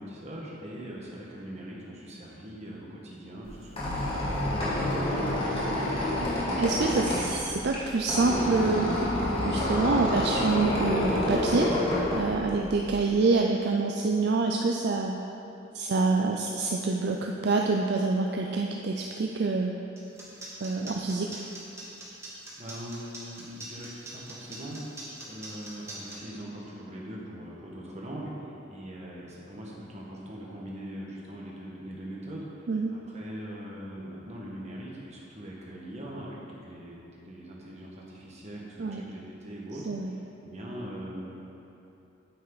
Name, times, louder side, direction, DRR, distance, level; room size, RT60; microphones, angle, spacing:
voice 1, 0.0-5.9 22.6-24.8 25.2-41.3, equal, 35° right, -4 dB, 1.6 m, -41 dB
Squeak, 3.4-13.1, left 1 dB, 30° left, 2.0 m, -28 dB
voice 2, 6.6-8.9 9.4-11.7 12.1-15.1 15.7-19.8 20.6-21.4 32.7-32.9 38.8-39.0 39.9-40.1, right 3 dB, 55° right, 1 dB, 0.5 m, -26 dB
sound 1, 20.0-26.2, right 2 dB, 15° right, 1.6 m, -42 dB
8.9 x 8.8 x 4.1 m, 2.9 s
head